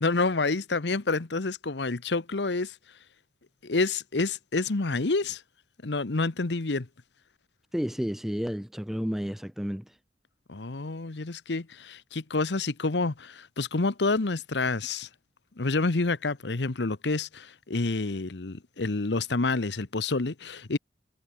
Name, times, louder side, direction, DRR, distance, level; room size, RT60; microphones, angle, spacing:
voice 1, 0.0-2.8 3.6-5.4 5.8-6.9 10.5-15.1 15.6-20.8, left 3 dB, 75° left, 1.0 m, -28 dB
voice 2, 7.7-9.8, equal, ahead, 0.3 m, -31 dB
head